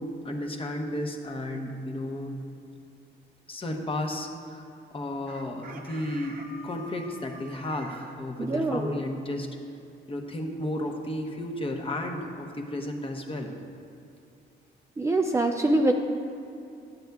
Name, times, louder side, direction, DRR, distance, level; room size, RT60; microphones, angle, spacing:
voice 1, 0.0-2.3 3.5-9.5 10.1-13.5, left 1 dB, 25° left, 3 dB, 0.8 m, -33 dB
Chicken rooster, 5.3-8.2, right 1 dB, 45° right, 0.7 m, -46 dB
voice 2, 8.4-9.0 15.0-15.9, right 2 dB, 15° right, 3 dB, 0.3 m, -24 dB
10.5 x 7.8 x 2.3 m, 2.6 s
cardioid pair, 90°, 20 cm